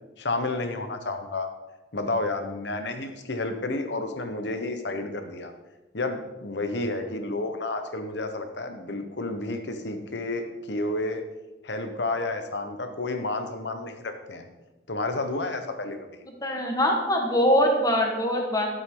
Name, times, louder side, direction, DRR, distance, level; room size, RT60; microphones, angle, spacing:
voice 1, 0.2-1.5 1.9-5.5 5.9-11.2 11.6-14.5 14.9-16.1, left 2 dB, 65° left, 6 dB, 1.1 m, -31 dB
voice 2, 16.4-18.7, equal, 20° left, 1 dB, 1.6 m, -23 dB
11.5 x 8.0 x 3.9 m, 1.1 s
head